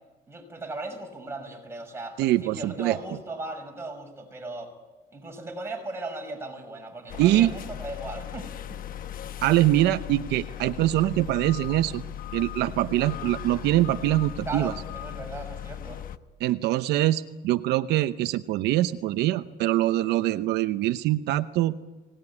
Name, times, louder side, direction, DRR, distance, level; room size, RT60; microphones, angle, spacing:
voice 1, 0.3-4.7 5.1-8.8 14.5-16.0 20.0-20.4, right 2 dB, 15° right, 2 dB, 6.3 m, -37 dB
voice 2, 2.2-3.0 7.2-7.5 9.4-12.0 12.3-14.7 16.4-21.7, right 15 dB, 85° right, 10 dB, 0.8 m, -23 dB
sound 1, 7.1-16.2, left 11 dB, 55° left, 1.0 m, -38 dB
24.0 x 19.0 x 9.8 m, 1.2 s
cardioid pair, 110°, 17 cm